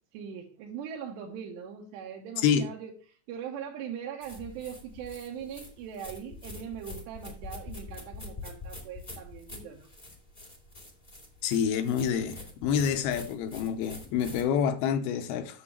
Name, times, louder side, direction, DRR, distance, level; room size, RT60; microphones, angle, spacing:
voice 1, 0.1-9.9, right 8 dB, 85° right, 3.2 m, -41 dB
voice 2, 2.4-2.7 11.4-15.6, left 7 dB, 80° left, 2.4 m, -27 dB
sound 1, 4.2-14.4, left 3 dB, 45° left, 0.4 m, -45 dB
9.8 x 7.0 x 3.1 m
omnidirectional pair, 5.0 m